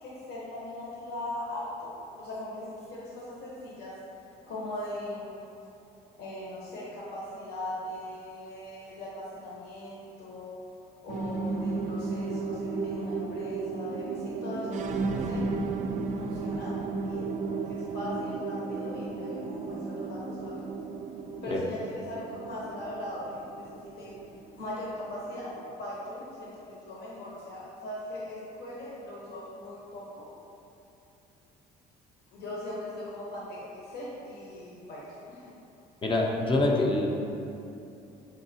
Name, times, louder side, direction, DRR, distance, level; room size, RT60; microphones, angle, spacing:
voice 1, 0.0-1.9 2.2-3.9 4.5-5.4 6.1-10.6 11.0-14.8 15.0-15.5 16.2-16.8 17.0-20.6 21.4-24.1 24.6-30.3 32.3-35.6, left 1 dB, 75° left, -6 dB, 0.9 m, -40 dB
sound 1, 11.1-25.7, right 4 dB, 45° right, 0.4 m, -34 dB
voice 2, 36.0-37.1, left 2 dB, 30° left, 0 dB, 0.5 m, -25 dB
5.5 x 3.5 x 2.7 m, 2.8 s
cardioid pair, 110°, 17 cm